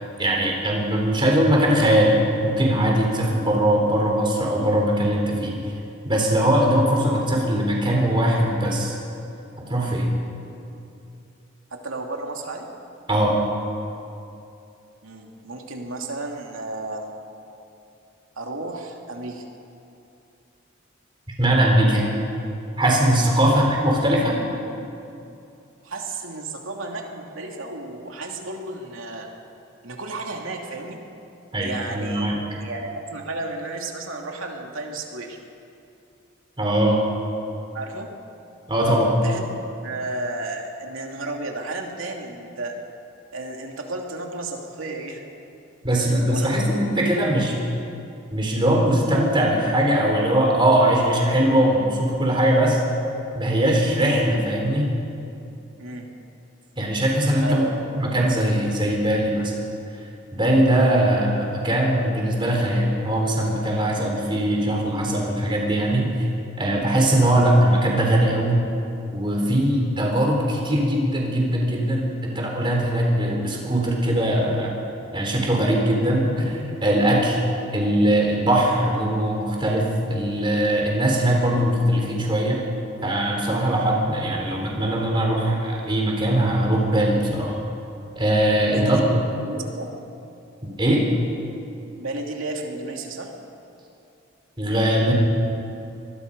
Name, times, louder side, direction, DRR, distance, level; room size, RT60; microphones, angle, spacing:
voice 1, 0.2-5.6 6.0-8.9 9.6-10.1 13.1-13.4 21.4-22.1 22.8-24.4 31.5-32.4 36.6-37.0 38.7-39.2 45.8-47.6 48.3-52.8 53.3-54.9 56.8-57.7 58.0-59.5 60.3-66.3 66.6-68.6 69.1-74.7 75.1-77.4 77.7-82.6 83.0-87.6 88.1-89.2 90.8-91.0 94.6-95.1, right 1 dB, 25° right, -1 dB, 4.0 m, -21 dB
voice 2, 11.7-12.7 15.0-17.1 18.4-19.4 23.4-23.5 25.8-29.3 29.8-31.0 31.6-35.4 37.7-38.1 39.2-42.8 43.3-45.2 45.9-46.6 55.8-56.1 57.4-57.8 77.6-77.8 88.7-89.9 92.0-93.3, right 2 dB, 85° right, 1 dB, 2.8 m, -33 dB
24.5 x 20.0 x 5.4 m, 2.7 s
head